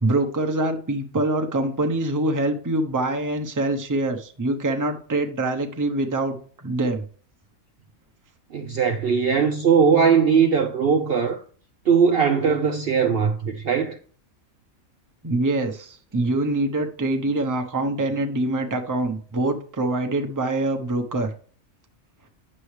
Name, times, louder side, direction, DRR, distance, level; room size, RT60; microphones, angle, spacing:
voice 1, 0.0-6.4 6.6-7.0 15.2-21.3, right 2 dB, 15° right, 0.8 m, -24 dB
voice 2, 8.5-11.4 11.9-14.0, right 6 dB, 55° right, 0.8 m, -19 dB
9.8 x 6.9 x 3.3 m
omnidirectional pair, 1.4 m